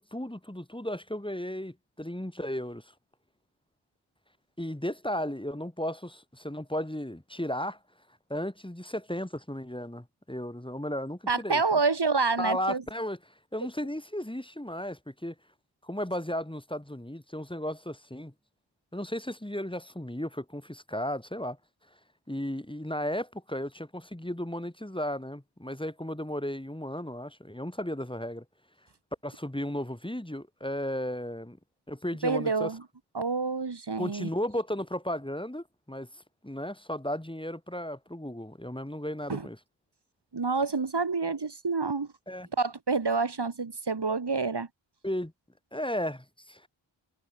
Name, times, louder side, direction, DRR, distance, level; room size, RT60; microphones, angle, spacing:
voice 1, 0.0-2.9 4.6-7.8 8.3-11.8 12.4-15.3 15.8-18.3 18.9-21.6 22.3-28.4 29.2-31.6 31.9-32.7 34.0-39.6 42.3-42.5 45.0-45.3 45.7-46.7, left 1 dB, 10° left, 3.0 m, -35 dB
voice 2, 11.3-12.8 32.2-32.8 33.1-34.3 39.3-39.5 40.3-42.1 42.6-44.7, right 4 dB, 55° right, 2.2 m, -28 dB
wide cardioid pair, 55°, 48 cm